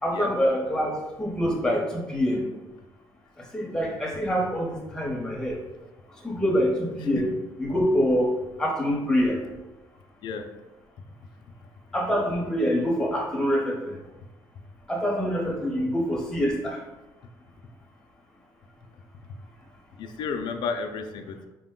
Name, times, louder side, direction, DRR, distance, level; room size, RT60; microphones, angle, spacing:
voice 1, 0.0-2.4 3.5-5.6 6.2-7.3 7.6-8.3 8.6-9.4 11.9-14.0 14.9-16.8, equal, 5° left, -2 dB, 0.9 m, -25 dB
voice 2, 20.0-21.5, left 5 dB, 60° left, 6 dB, 0.4 m, -32 dB
4.9 x 2.1 x 3.7 m, 1.0 s
cardioid pair, 130°, 9 cm